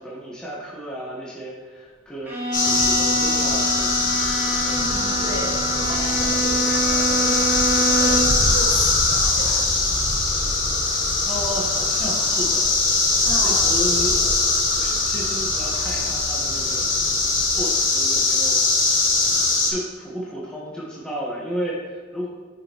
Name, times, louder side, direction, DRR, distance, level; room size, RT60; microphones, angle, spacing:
voice 1, 0.0-3.9 11.2-12.8 13.4-14.1 14.8-16.8 17.5-19.0 19.4-22.3, equal, 5° left, -6 dB, 1.2 m, -33 dB
Bowed string instrument, 2.2-8.5, right 2 dB, 10° right, 1.4 m, -26 dB
sound 1, 2.5-19.7, left 3 dB, 45° left, 1.6 m, -21 dB
voice 2, 4.6-9.6 13.2-13.6, left 1 dB, 65° left, -4 dB, 1.9 m, -34 dB
9.6 x 5.0 x 3.0 m, 1.5 s
head